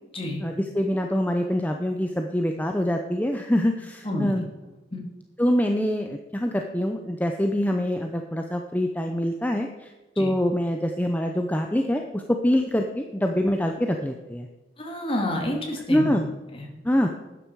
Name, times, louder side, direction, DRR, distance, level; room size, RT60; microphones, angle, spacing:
voice 1, 0.4-4.4 5.4-9.7 10.2-14.5 15.9-16.2 16.8-17.1, equal, 10° left, 4 dB, 0.7 m, -25 dB
voice 2, 14.8-16.1 16.5-16.7, left 1 dB, 30° left, 1 dB, 2.6 m, -29 dB
12.5 x 9.8 x 4.7 m, 1.1 s
head